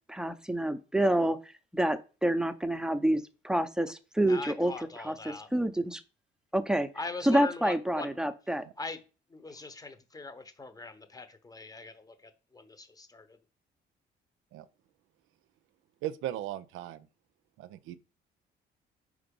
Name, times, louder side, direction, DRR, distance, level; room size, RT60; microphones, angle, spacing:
voice 1, 0.1-1.4 1.7-4.7 5.0-5.1 5.5-6.0 6.5-6.9 7.3-8.6, right 1 dB, 5° right, 0.6 m, -27 dB
voice 2, 4.3-5.5 6.9-8.1 8.8-9.0 9.3-13.4, left 3 dB, 20° left, 0.9 m, -41 dB
voice 3, 16.0-17.1 17.6-18.0, right 13 dB, 90° right, 0.5 m, -37 dB
5.0 x 3.9 x 5.2 m
cardioid pair, 90°, 20 cm